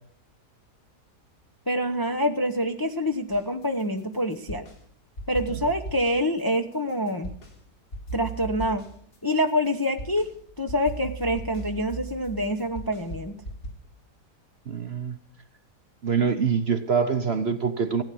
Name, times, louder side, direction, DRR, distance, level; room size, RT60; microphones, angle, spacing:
voice 1, 1.7-4.6 5.3-7.3 8.1-8.8 9.2-10.3 10.6-13.3, equal, 20° left, 5 dB, 0.7 m, -26 dB
sound 1, 3.3-4.8 5.2-7.6 7.9-13.7, right 2 dB, 55° left, 3.6 m, -38 dB
voice 2, 14.7-15.2 16.0-18.0, right 6 dB, 45° right, 9 dB, 0.9 m, -25 dB
15.0 x 9.8 x 7.7 m, 0.63 s
omnidirectional pair, 1.8 m